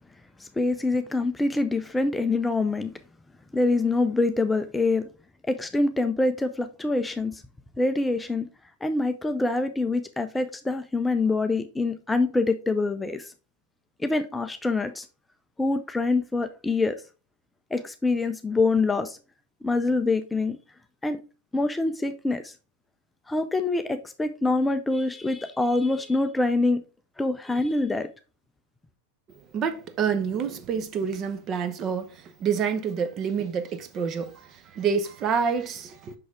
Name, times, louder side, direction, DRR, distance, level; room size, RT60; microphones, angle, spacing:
voice 1, 0.4-2.9 3.5-5.0 5.4-7.4 7.8-8.5 8.8-13.3 14.0-15.1 15.6-17.0 17.7-19.2 19.6-20.6 21.0-21.2 21.5-22.5 23.3-26.8 27.2-28.1, left 3 dB, 10° left, 0.5 m, -25 dB
voice 2, 29.5-36.1, right 6 dB, 30° right, 0.9 m, -28 dB
6.2 x 5.8 x 3.6 m
figure-of-eight pair, 90°, 0 cm